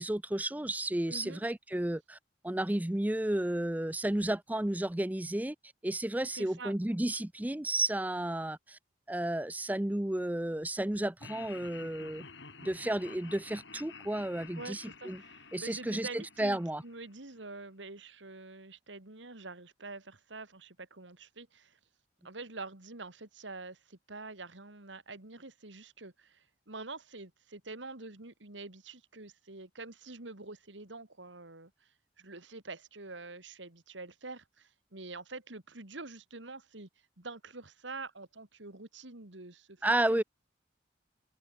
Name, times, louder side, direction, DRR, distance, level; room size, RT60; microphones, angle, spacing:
voice 1, 0.0-2.2 2.4-5.6 5.8-8.8 9.1-12.3 12.6-15.2 15.5-16.8 39.8-40.2, right 1 dB, 10° right, 0.5 m, -32 dB
voice 2, 1.1-1.4 6.3-6.7 14.6-21.8 22.2-31.7 32.2-36.9 37.2-40.2, right 3 dB, 85° right, 2.7 m, -46 dB
Laughter, 11.2-17.4, left 5 dB, 75° left, 5.9 m, -51 dB
head